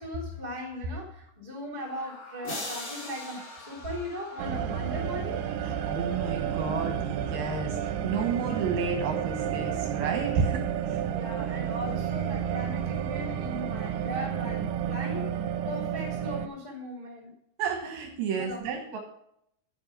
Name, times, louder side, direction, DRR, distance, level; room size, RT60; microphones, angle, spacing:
voice 1, 0.0-5.4 11.1-15.3 15.6-17.3 18.3-18.8, left 1 dB, 15° left, -4 dB, 1.3 m, -38 dB
Screaming, 1.8-8.0, left 3 dB, 55° left, 2.0 m, -50 dB
sound 1, 2.4-4.8, left 2 dB, 35° left, 2.5 m, -40 dB
sound 2, 4.4-16.5, right 9 dB, 90° right, 3.0 m, -31 dB
voice 2, 5.6-11.0 17.6-19.0, right 5 dB, 70° right, 3 dB, 2.6 m, -31 dB
9.7 x 7.7 x 5.2 m, 0.75 s
omnidirectional pair, 5.3 m